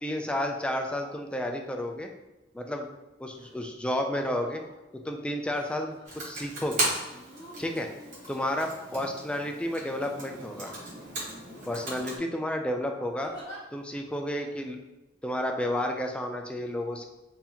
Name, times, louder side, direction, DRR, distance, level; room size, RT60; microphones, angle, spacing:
voice 1, 0.0-2.1 2.5-2.9 3.2-4.6 5.0-6.0 6.2-6.9 7.6-7.9 8.3-10.7 11.7-13.3 13.7-14.8 15.2-17.1, left 1 dB, 5° left, 3 dB, 0.3 m, -31 dB
sound 1, 3.3-3.6 4.0-4.7 5.5-6.0 7.0-9.1 9.9-10.6 11.0-11.2 11.7-12.3 13.2-13.6 14.4-14.5, equal, 25° left, 1.2 m, -49 dB
Computer keyboard, 6.0-12.2, right 1 dB, 45° right, 1.3 m, -36 dB
3.9 x 2.7 x 2.8 m, 1.0 s
head